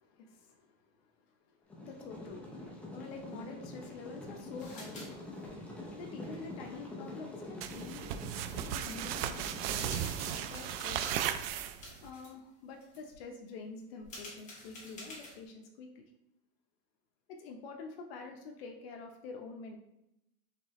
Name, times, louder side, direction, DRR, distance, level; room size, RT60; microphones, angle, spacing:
voice 1, 0.0-5.0 6.0-8.1 8.5-11.3 12.0-16.1 17.3-19.8, left 4 dB, 85° left, 2 dB, 0.7 m, -47 dB
sound 1, 1.7-10.8, left 1 dB, 5° left, 0.5 m, -46 dB
sound 2, 4.6-5.1 5.3-5.5 8.3-8.4 8.9-9.2 9.6-12.3 12.7-13.1 14.0-15.4, left 1 dB, 25° left, 1.4 m, -50 dB
sound 3, 7.6-12.1, right 10 dB, 80° right, 0.5 m, -36 dB
4.5 x 3.1 x 3.0 m, 0.83 s
supercardioid pair, 165°, 29 cm